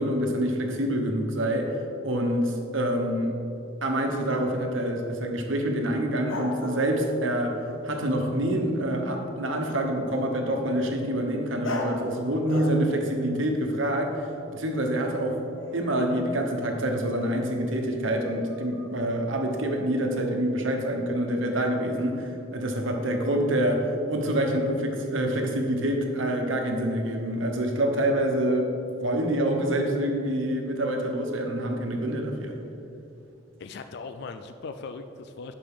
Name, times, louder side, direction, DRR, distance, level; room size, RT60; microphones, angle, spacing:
voice 1, 0.0-3.4 3.8-7.6 7.8-15.4 15.7-28.7 29.0-32.6, right 1 dB, 80° right, 2 dB, 1.1 m, -26 dB
sound 1, 4.4-4.6 6.3-8.6 10.1-10.3 11.6-12.1 12.5-13.0 13.3-16.2 17.1-17.3 18.0-19.2, left 2 dB, 90° left, 1.1 m, -39 dB
voice 2, 33.6-35.5, left 4 dB, 60° left, 9 dB, 0.4 m, -39 dB
11.5 x 5.1 x 3.7 m, 2.7 s
head